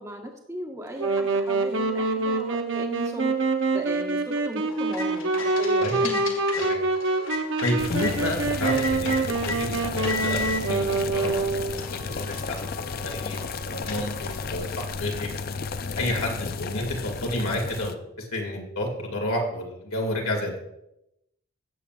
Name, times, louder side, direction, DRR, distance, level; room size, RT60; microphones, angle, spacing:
voice 1, 0.0-3.4 3.7-6.4, right 1 dB, 15° right, 1 dB, 1.3 m, -36 dB
Wind instrument woodwind instrument, 1.0-11.9, right 3 dB, 60° right, 0.8 m, -26 dB
sound 1, 4.7-8.2 8.6-9.6 10.0-10.6 11.3-11.4 11.7-14.5, left 3 dB, 60° left, 1.9 m, -35 dB
voice 2, 7.6-9.1 9.4-10.9 11.1-15.3 16.0-16.9 17.2-20.6, left 1 dB, 75° left, 1 dB, 2.3 m, -30 dB
sound 2, 7.8-18.0, left 4 dB, 45° left, 0.4 m, -33 dB
17.0 x 7.5 x 2.5 m, 0.83 s
head